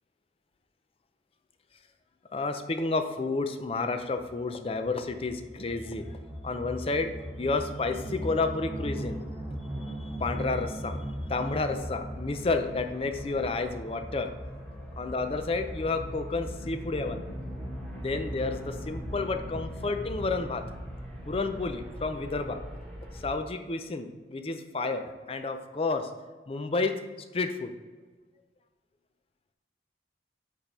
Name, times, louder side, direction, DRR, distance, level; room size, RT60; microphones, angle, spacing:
voice 1, 2.3-6.2 6.4-7.1 7.4-9.2 10.0-11.0 11.3-14.3 15.0-17.2 18.0-20.6 21.3-22.6 23.1-25.0 25.3-26.1 26.5-26.9 27.3-27.7, left 3 dB, 30° left, 7 dB, 0.4 m, -30 dB
sound 1, 4.2-23.3, equal, ahead, 1.1 m, -39 dB
5.2 x 4.9 x 4.3 m, 1.3 s
head